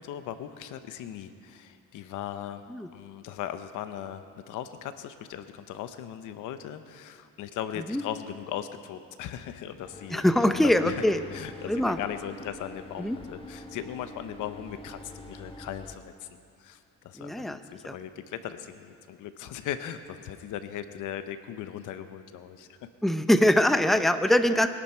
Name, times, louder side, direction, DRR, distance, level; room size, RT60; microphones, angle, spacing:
voice 1, 0.0-2.6 2.9-10.2 10.6-11.0 11.3-16.3 16.6-16.8 17.0-22.7, left 10 dB, 90° left, 10 dB, 0.8 m, -38 dB
sound 1, 9.8-16.0, left 1 dB, 20° left, 1.5 m, -45 dB
voice 2, 10.1-11.2 11.7-12.0 13.0-13.2 17.2-17.6 17.9-18.0 23.0-24.7, left 1 dB, ahead, 9 dB, 0.7 m, -23 dB
22.5 x 11.5 x 4.4 m, 2.4 s
cardioid pair, 90°, 30 cm